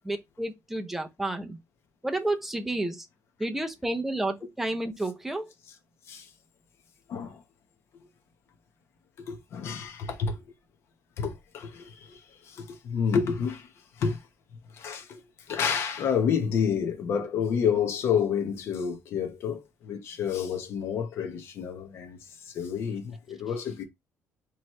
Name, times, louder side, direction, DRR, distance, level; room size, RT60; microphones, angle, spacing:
voice 1, 0.1-1.6 2.0-3.1 3.4-5.5, right 2 dB, 5° right, 0.5 m, -31 dB
voice 2, 7.1-7.4 9.3-10.4 11.2-14.3 14.7-15.2 15.5-23.8, left 7 dB, 50° left, 0.9 m, -29 dB
4.5 x 3.1 x 3.0 m
cardioid pair, 180°, 6 cm